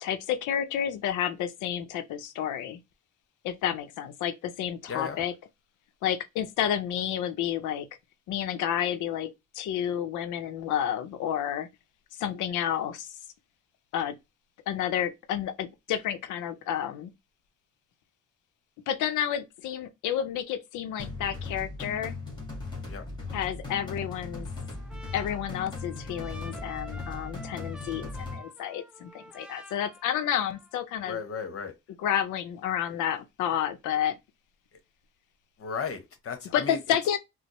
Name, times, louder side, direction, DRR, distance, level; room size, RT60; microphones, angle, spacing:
voice 1, 0.0-2.8 3.4-5.3 6.0-7.9 8.3-11.7 12.1-13.2 13.9-14.2 14.7-17.1 18.9-22.1 23.3-24.5 25.1-31.2 32.0-34.2 36.5-37.2, left 10 dB, 85° left, 0.6 m, -30 dB
voice 2, 4.9-5.2 22.9-23.0 31.0-31.7 35.6-36.8, left 6 dB, 50° left, 0.9 m, -35 dB
sound 1, 21.0-28.4, left 3 dB, 15° left, 1.7 m, -38 dB
Trumpet, 24.1-30.8, right 1 dB, 5° right, 0.8 m, -49 dB
4.3 x 2.0 x 2.9 m
cardioid pair, 90°, 30 cm